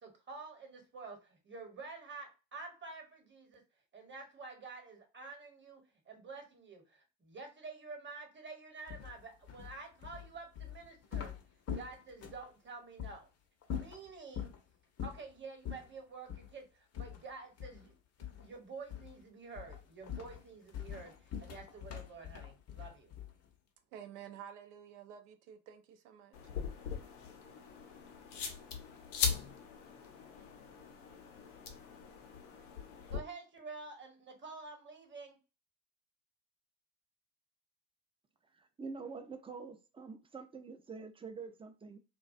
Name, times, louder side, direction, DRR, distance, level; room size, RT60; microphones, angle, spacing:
voice 1, 0.0-3.6 3.9-5.8 6.1-11.3 11.7-13.3 13.7-14.5 15.0-17.9 18.2-23.1 33.1-35.4, right 4 dB, 30° right, 1.1 m, -49 dB
sound 1, 8.9-12.5 13.0-13.2 13.6-14.6 15.0-15.3 15.6-15.9 16.3-16.5 16.9-17.9 18.2-18.6 18.9-19.2 19.5-23.5, left 9 dB, 45° left, 0.6 m, -43 dB
voice 2, 23.9-26.3, right 9 dB, 85° right, 0.5 m, -51 dB
sound 2, 26.3-33.2, left 6 dB, 85° left, 0.6 m, -40 dB
voice 3, 38.5-42.0, right 4 dB, 15° right, 0.4 m, -46 dB
2.3 x 2.2 x 2.5 m
hypercardioid pair, 60°, 36 cm